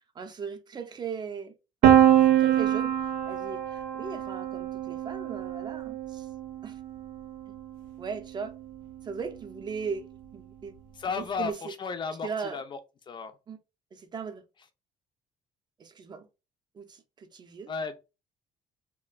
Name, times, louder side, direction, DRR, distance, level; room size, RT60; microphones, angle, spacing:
voice 1, 0.1-1.6 1.8-6.3 6.6-6.8 8.0-8.6 9.0-10.8 11.1-11.8 12.2-12.6 13.5-13.6 13.9-14.4 15.8-16.3 16.7-17.7, right 6 dB, 30° right, 0.6 m, -38 dB
Piano, 1.8-7.6, right 11 dB, 80° right, 0.4 m, -24 dB
voice 2, 11.0-12.6 13.1-13.3 17.7-18.0, left 5 dB, 35° left, 0.5 m, -33 dB
2.4 x 2.1 x 2.3 m
cardioid pair, 100°, 14 cm